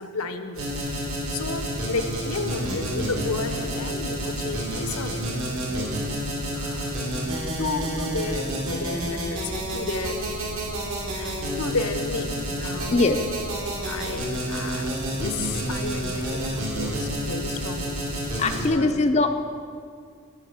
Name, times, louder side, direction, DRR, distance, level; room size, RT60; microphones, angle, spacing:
voice 1, 0.0-5.3 5.6-6.2 6.5-10.5 11.1-13.2 13.8-19.1, left 3 dB, 85° left, 9 dB, 0.8 m, -33 dB
sound 1, 0.6-18.7, right 1 dB, 75° right, 2.4 m, -29 dB
voice 2, 18.4-19.3, left 2 dB, 30° left, 6 dB, 0.4 m, -21 dB
10.5 x 6.8 x 7.5 m, 2.2 s
head